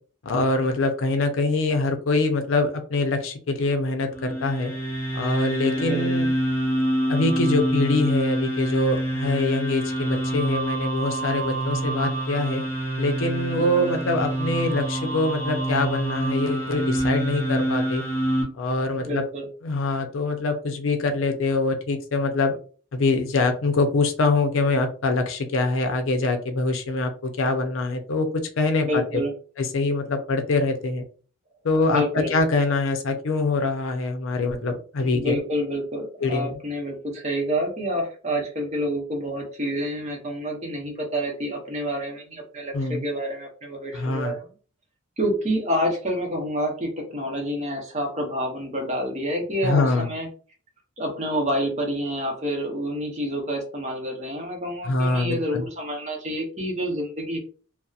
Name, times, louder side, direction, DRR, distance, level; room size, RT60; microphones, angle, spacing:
voice 1, 0.2-4.7 5.1-6.3 7.1-12.6 13.0-18.0 18.6-19.2 19.6-22.6 22.9-28.3 28.6-29.0 29.6-31.1 31.6-35.4 36.2-36.6 42.7-43.0 43.9-44.4 49.6-50.1 54.8-55.7, left 3 dB, 70° left, 5 dB, 0.5 m, -24 dB
sound 1, 4.1-18.4, right 1 dB, 15° left, 0.9 m, -26 dB
voice 2, 13.6-14.0 19.0-19.5 28.8-29.3 31.9-32.3 35.0-44.4 45.2-50.3 51.0-57.4, equal, 35° right, 0 dB, 0.7 m, -28 dB
2.7 x 2.0 x 2.3 m, 0.39 s
head